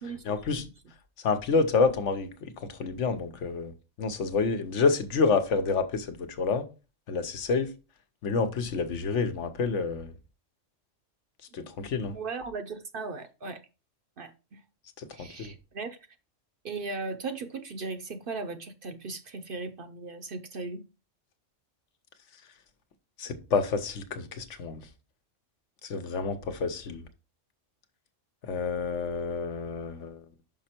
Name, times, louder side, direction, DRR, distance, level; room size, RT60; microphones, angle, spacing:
voice 1, 0.2-0.6 1.2-2.3 2.6-3.7 4.0-6.6 7.1-7.7 8.2-10.1 11.5-12.2 15.0-15.5 23.2-24.8 25.8-27.1 28.4-30.2, left 4 dB, 70° left, 1.1 m, -28 dB
voice 2, 12.1-13.6 14.2-14.6 15.1-16.0 16.6-20.8, right 4 dB, 55° right, 0.7 m, -37 dB
5.9 x 5.3 x 4.3 m
omnidirectional pair, 1.3 m